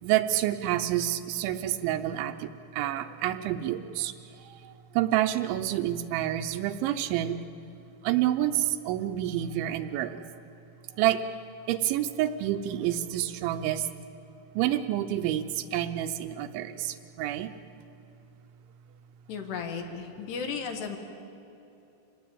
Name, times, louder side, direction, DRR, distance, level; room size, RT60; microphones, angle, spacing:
voice 1, 0.0-7.5 8.0-10.3 11.0-11.3 11.7-13.9 14.6-17.5, right 12 dB, 80° right, 8 dB, 3.1 m, -28 dB
voice 2, 19.3-21.0, left 5 dB, 65° left, 4 dB, 3.6 m, -35 dB
26.0 x 19.0 x 8.7 m, 2.9 s
omnidirectional pair, 5.6 m